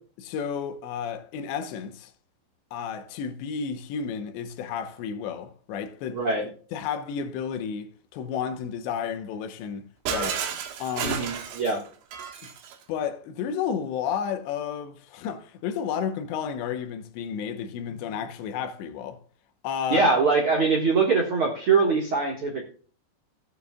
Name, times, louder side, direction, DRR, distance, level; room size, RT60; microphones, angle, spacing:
voice 1, 0.2-2.1 2.7-9.8 10.1-10.4 10.8-11.3 12.4-12.5 12.9-19.2 19.6-20.1, left 7 dB, 80° left, 3.2 m, -32 dB
voice 2, 6.1-6.4 11.0-11.8 19.9-22.6, right 4 dB, 55° right, 1.5 m, -23 dB
Shatter, 10.1-12.8, right 8 dB, 90° right, 4.0 m, -32 dB
16.0 x 9.1 x 2.3 m
omnidirectional pair, 5.1 m